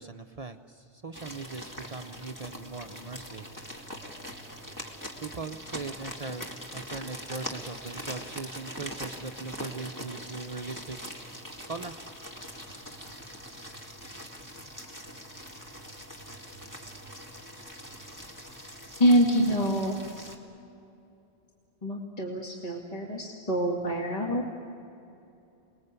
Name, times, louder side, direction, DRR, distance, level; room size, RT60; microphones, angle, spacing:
voice 1, 0.0-3.5 5.2-11.3 11.7-11.9, right 4 dB, 40° right, 6 dB, 0.8 m, -40 dB
sound 1, 1.1-20.4, equal, 15° left, 2.2 m, -42 dB
voice 2, 19.0-20.0 21.8-24.5, equal, 35° left, -1 dB, 2.2 m, -25 dB
28.5 x 20.5 x 8.2 m, 2.7 s
omnidirectional pair, 1.1 m